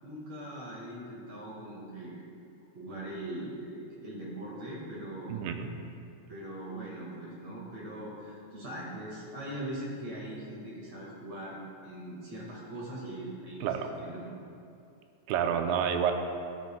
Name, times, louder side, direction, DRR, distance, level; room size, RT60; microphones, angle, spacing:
voice 1, 0.0-2.2 2.7-5.4 6.3-11.6 11.8-13.7 14.0-14.4, right 1 dB, 50° right, -5 dB, 2.1 m, -41 dB
voice 2, 5.3-5.7 13.6-13.9 15.3-16.1, right 8 dB, 85° right, 5 dB, 2.9 m, -29 dB
17.5 x 10.5 x 2.3 m, 2.5 s
omnidirectional pair, 5.1 m